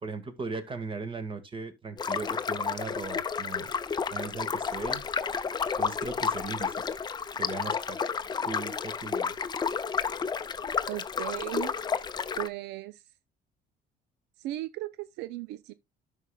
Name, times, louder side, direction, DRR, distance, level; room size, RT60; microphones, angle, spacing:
voice 1, 0.0-3.7 4.1-5.0 5.8-7.0 7.3-9.3, right 4 dB, 30° right, 1.7 m, -38 dB
sound 1, 2.0-12.5, left 6 dB, 25° left, 0.5 m, -31 dB
voice 2, 10.9-11.8 12.3-13.0 14.4-15.7, right 16 dB, 90° right, 0.5 m, -36 dB
12.5 x 5.7 x 2.3 m
cardioid pair, 110°, 17 cm